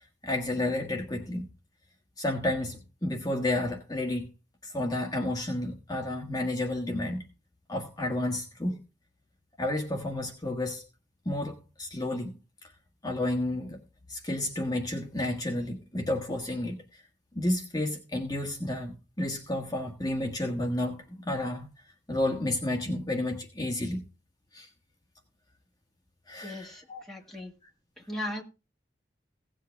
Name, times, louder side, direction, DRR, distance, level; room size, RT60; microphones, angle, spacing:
voice 1, 0.2-1.4 2.2-4.3 4.6-7.2 7.7-8.8 9.6-10.9 11.2-12.3 12.6-12.7 13.0-13.8 14.1-17.0 17.3-21.7 22.1-24.0 24.5-24.7 26.3-27.0, left 1 dB, 20° left, 1.5 m, -31 dB
voice 2, 26.4-26.8 27.1-27.5 28.1-28.4, left 1 dB, ahead, 1.8 m, -36 dB
17.0 x 7.6 x 3.5 m
head